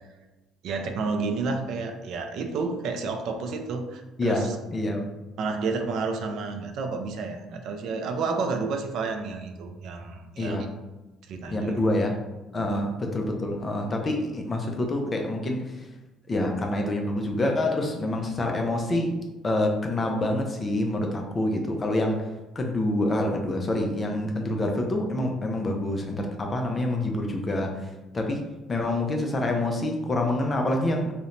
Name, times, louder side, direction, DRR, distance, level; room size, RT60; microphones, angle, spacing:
voice 1, 0.6-4.6 5.4-10.7 11.3-11.8 12.6-12.8, right 4 dB, 60° right, 5 dB, 0.3 m, -30 dB
voice 2, 4.2-5.1 10.4-10.7 11.5-12.2 12.5-15.9 16.3-22.2 22.6-31.1, left 1 dB, 20° left, 2 dB, 0.4 m, -27 dB
2.5 x 2.1 x 2.8 m, 1.1 s
cardioid pair, 145°, 0 cm